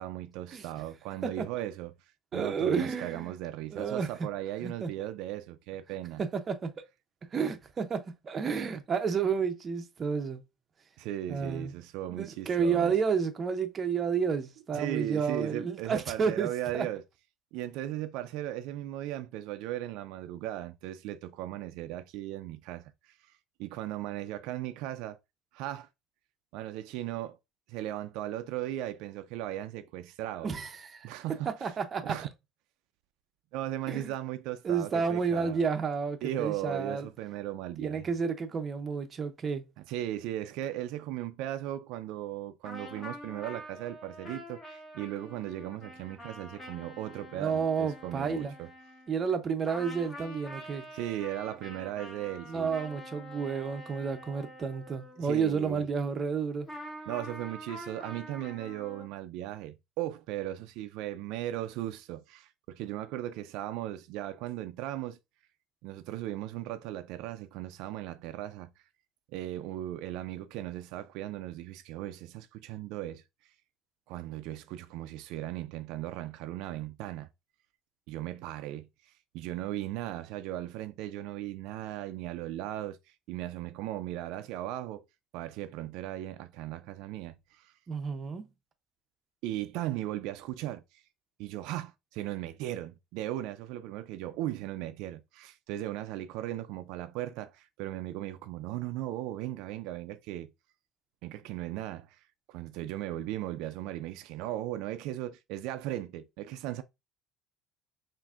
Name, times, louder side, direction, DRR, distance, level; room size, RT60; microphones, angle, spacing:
voice 1, 0.0-1.9 2.3-6.2 11.0-13.0 14.7-17.0 17.5-23.3 23.6-25.2 25.5-25.9 26.5-27.4 27.7-30.5 31.0-31.7 32.0-32.3 33.5-35.7 36.2-38.1 39.9-48.7 50.9-52.8 55.2-55.9 57.1-65.2 65.8-68.8 69.3-73.2 74.1-77.3 78.1-85.0 85.3-87.7 89.4-91.0 91.4-100.5 101.2-106.8, right 13 dB, 75° right, 0.3 m, -37 dB
voice 2, 2.3-3.3 3.7-4.1 4.6-4.9 6.2-6.7 7.3-10.4 11.3-11.7 12.1-16.5 16.7-16.9 30.4-31.1 31.6-32.2 33.9-34.1 34.6-37.1 37.8-39.6 47.4-48.5 49.1-50.8 52.5-56.7 87.9-88.4, right 6 dB, 25° right, 0.5 m, -31 dB
sound 1, 42.6-49.4 49.7-55.6 56.7-59.1, equal, 20° left, 1.2 m, -46 dB
5.9 x 2.5 x 2.4 m
cardioid pair, 160°, 0 cm